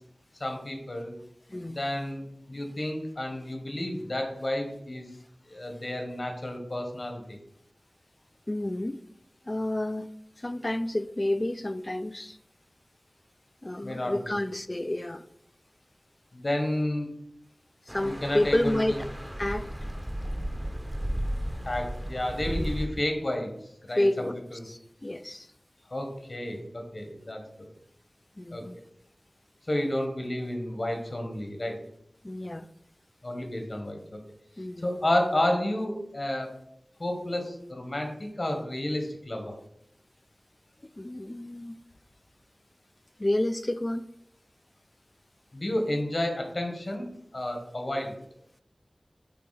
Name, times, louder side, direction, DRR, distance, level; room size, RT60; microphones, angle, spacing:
voice 1, 0.4-1.1 1.7-2.2 2.5-5.1 5.4-7.4 13.8-14.1 16.3-17.1 18.0-19.0 21.6-23.6 23.9-24.7 25.9-27.7 28.5-28.6 29.7-31.8 33.2-34.2 34.8-36.5 37.0-39.5 45.5-47.1 47.3-48.2, left 1 dB, 55° left, 4 dB, 1.3 m, -31 dB
voice 2, 8.5-9.0 9.5-10.1 10.4-12.4 13.6-15.2 17.9-18.9 19.4-19.7 22.6-22.7 24.0-24.4 24.7-25.5 28.4-28.8 32.2-32.7 34.6-34.9 41.0-41.8 43.2-44.1, left 1 dB, 35° left, 13 dB, 0.4 m, -29 dB
sound 1, 17.9-22.9, equal, 10° right, 0.9 m, -34 dB
8.3 x 2.8 x 4.0 m, 0.74 s
wide cardioid pair, 40°, 0 cm